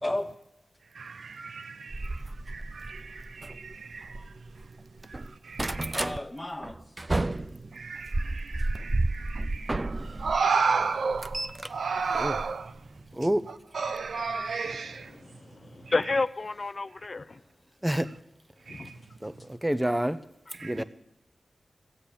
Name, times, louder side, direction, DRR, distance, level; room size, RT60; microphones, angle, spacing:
voice 1, 0.0-0.3 5.9-6.8 20.8-20.9, left 1 dB, 20° left, 1.0 m, -33 dB
voice 2, 0.9-4.3 5.2-6.0 7.7-12.7 13.7-15.1 18.7-19.0 19.9-20.0 20.6-20.8, right 5 dB, 85° right, 0.6 m, -32 dB
sound 1, 1.9-4.7 5.0-6.2 6.6-10.4 10.8-13.0 14.1-14.3 14.7-14.8 15.0-15.1, right 2 dB, 35° right, 0.5 m, -32 dB
voice 3, 13.1-13.5 17.8-18.1 19.2-20.2 20.6-20.8, right 1 dB, 15° right, 0.9 m, -28 dB
voice 4, 14.6-17.4 18.7-18.9, left 3 dB, 55° left, 0.6 m, -31 dB
15.0 x 8.1 x 8.7 m
cardioid pair, 40°, 0 cm